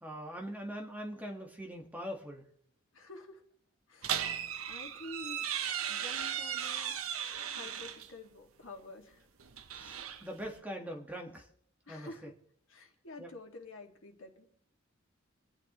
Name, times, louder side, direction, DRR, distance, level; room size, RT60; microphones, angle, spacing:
voice 1, 0.0-2.5 9.7-11.4 11.9-12.1 13.2-13.3, equal, 10° right, 1 dB, 1.6 m, -42 dB
voice 2, 2.9-3.5 3.9-4.4 4.7-7.0 7.4-9.3 11.9-12.3 12.7-14.4, left 2 dB, 70° left, 3 dB, 2.1 m, -49 dB
sound 1, 4.0-8.1 9.4-10.6, right 9 dB, 85° right, 0.9 m, -37 dB
27.0 x 9.1 x 3.1 m, 0.65 s
head